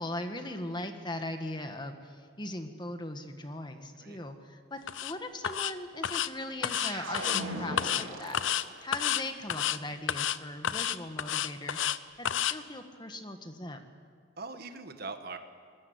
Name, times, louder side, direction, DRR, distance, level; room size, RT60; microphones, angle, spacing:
voice 1, 0.0-8.4 8.8-13.9, left 1 dB, 20° left, 7 dB, 1.5 m, -39 dB
sound 1, 4.9-5.1 5.4-5.7 6.0-6.3 6.6-7.4 7.8-8.0 8.3-8.6 8.9-9.2 9.5-9.8 10.1-10.4 10.6-12.0 12.3-12.5, left 9 dB, 65° left, 0.7 m, -30 dB
sound 2, 6.7-9.0, right 1 dB, 85° right, 6.5 m, -38 dB
voice 2, 14.4-15.4, right 3 dB, 50° right, 7 dB, 1.6 m, -42 dB
24.5 x 20.5 x 8.1 m, 2.1 s
head